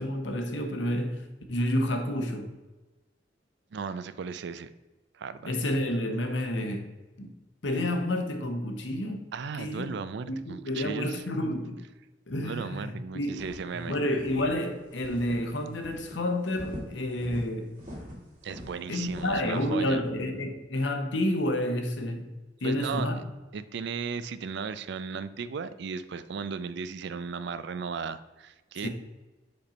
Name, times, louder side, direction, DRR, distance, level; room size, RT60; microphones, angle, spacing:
voice 1, 0.0-2.5 5.4-6.9 7.2-7.3 7.6-9.2 9.6-9.8 10.3-11.8 12.3-13.5 13.7-17.7 18.9-22.3 22.6-23.2 28.8-28.9, left 1 dB, 75° left, 0.9 m, -30 dB
voice 2, 3.7-4.7 5.1-5.5 9.3-11.2 12.4-14.0 18.4-20.0 22.6-23.2 23.5-28.9, right 5 dB, 65° right, 0.4 m, -36 dB
sound 1, 13.4-13.8 14.2-14.5 15.0-15.5 15.8-16.1 16.5-17.4 17.8-19.5, equal, 45° right, 2.2 m, -42 dB
5.3 x 4.4 x 5.2 m
head